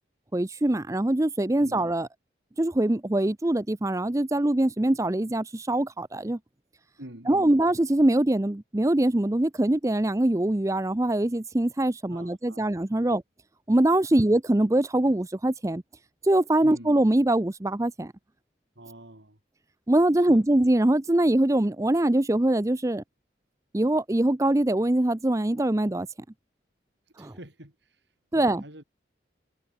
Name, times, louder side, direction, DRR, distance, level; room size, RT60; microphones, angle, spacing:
voice 1, 0.3-2.1 2.6-6.4 7.3-13.2 13.7-15.8 16.3-18.1 19.9-23.0 23.7-26.1 27.2-27.3 28.3-28.6, right 1 dB, 15° right, 0.6 m, -23 dB
voice 2, 7.0-7.5 12.1-12.6 13.0-13.2 14.1-14.3 16.6-16.9 18.8-19.4 20.1-20.4 27.2-28.8, right 1 dB, 70° right, 5.7 m, -46 dB
head